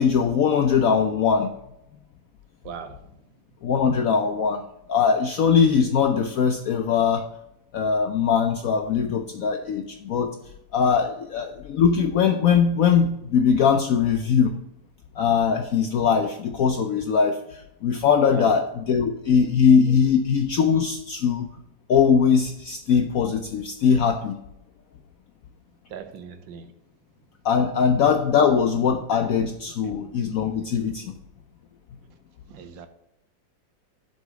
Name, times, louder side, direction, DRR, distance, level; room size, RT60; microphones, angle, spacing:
voice 1, 0.0-1.5 3.6-4.6 4.9-7.3 7.7-10.4 10.7-14.6 15.2-21.5 21.9-24.3 27.4-31.1, left 6 dB, 75° left, 0.8 m, -21 dB
voice 2, 2.6-3.1 18.3-18.5 25.9-26.7 29.8-29.9 32.5-32.9, right 7 dB, 80° right, 1.5 m, -39 dB
8.1 x 4.1 x 6.8 m
omnidirectional pair, 2.0 m